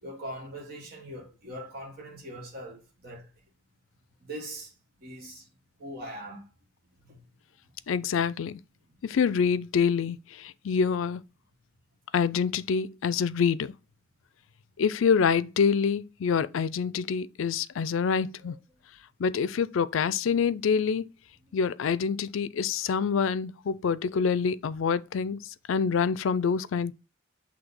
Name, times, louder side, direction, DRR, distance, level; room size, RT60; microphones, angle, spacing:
voice 1, 0.0-3.3 4.2-4.7 5.0-5.5 5.8-6.5 7.0-7.2 18.4-18.6, right 1 dB, 50° right, 1.2 m, -41 dB
voice 2, 7.9-8.6 9.0-11.2 12.1-13.7 14.8-18.5 19.2-21.1 21.5-26.9, left 6 dB, 80° left, 0.4 m, -26 dB
6.0 x 3.2 x 5.3 m
head